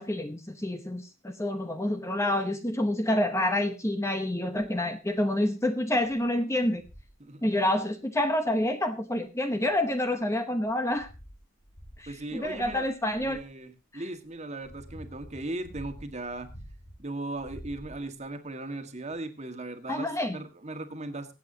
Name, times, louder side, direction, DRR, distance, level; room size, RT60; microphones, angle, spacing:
voice 1, 0.0-6.8 7.4-11.1 12.0-13.4 19.9-20.4, left 1 dB, 15° left, 8 dB, 0.9 m, -28 dB
sound 1, 4.6-4.9 5.5-5.6 6.0-6.2 6.7-7.2 8.6-8.7 9.5-10.2 10.7-13.5 14.2-17.0 17.3-18.3 19.1-19.2, equal, 85° left, 6.1 m, -48 dB
voice 2, 12.1-12.9 13.2-16.5 17.0-21.3, right 2 dB, 35° right, 7 dB, 1.6 m, -38 dB
24.5 x 8.3 x 2.8 m, 0.28 s
head